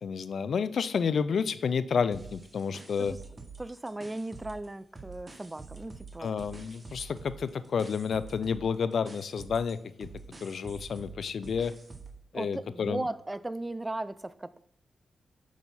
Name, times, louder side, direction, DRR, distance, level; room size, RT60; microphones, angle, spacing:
voice 1, 0.0-3.1 6.2-10.1 10.4-11.7 12.3-13.0, left 6 dB, 70° left, 14 dB, 0.4 m, -30 dB
sound 1, 2.1-4.7 5.0-12.2, right 4 dB, 35° right, 1.2 m, -47 dB
voice 2, 3.6-6.3 12.3-14.6, right 2 dB, 20° right, 17 dB, 0.4 m, -37 dB
6.2 x 5.0 x 5.5 m, 0.71 s
cardioid pair, 55°, 0 cm